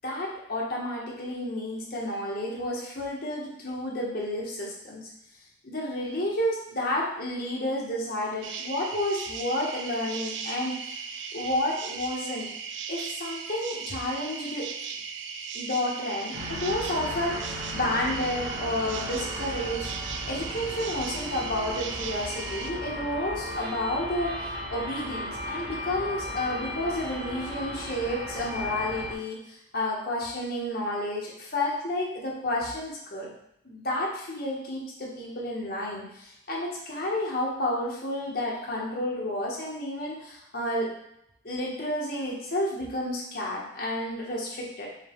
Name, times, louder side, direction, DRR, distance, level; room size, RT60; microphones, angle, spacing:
voice 1, 0.0-5.0 5.6-11.0 11.3-12.5 12.9-14.7 15.5-19.9 20.2-33.3 33.6-40.9 41.4-44.9, left 1 dB, 55° left, -4 dB, 1.3 m, -31 dB
sound 1, 8.4-22.7, right 6 dB, 85° right, 0.4 m, -37 dB
sound 2, 16.3-29.1, left 1 dB, 55° right, 0.9 m, -36 dB
6.2 x 2.4 x 3.6 m, 0.79 s
head